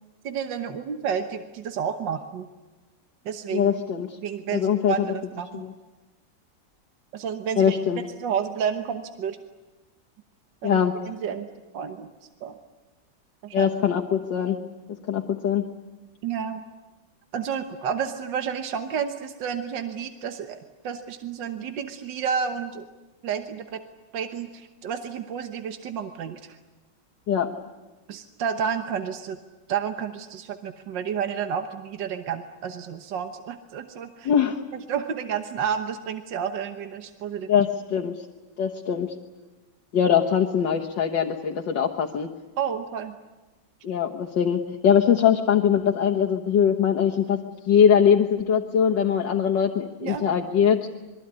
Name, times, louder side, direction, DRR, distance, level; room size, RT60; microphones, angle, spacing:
voice 1, 0.2-2.5 3.3-3.7 4.2-5.7 7.1-7.8 8.2-9.4 10.6-11.5 11.7-12.1 12.4-12.6 13.4-13.7 16.2-16.6 17.3-20.6 20.8-22.9 23.2-23.8 24.1-26.6 28.1-29.4 29.7-34.3 34.9-37.5 42.6-43.2 50.0-50.3, right 7 dB, 80° right, 7 dB, 1.8 m, -30 dB
voice 2, 3.5-4.2 4.5-5.0 5.5-5.7 7.6-8.0 10.6-10.9 13.5-14.6 15.1-15.7 27.3-27.5 34.2-34.6 37.5-38.3 38.6-39.1 39.9-42.3 43.8-47.4 47.7-50.8, left 8 dB, 75° left, -1 dB, 2.0 m, -22 dB
26.5 x 22.5 x 9.8 m, 1.2 s
omnidirectional pair, 2.0 m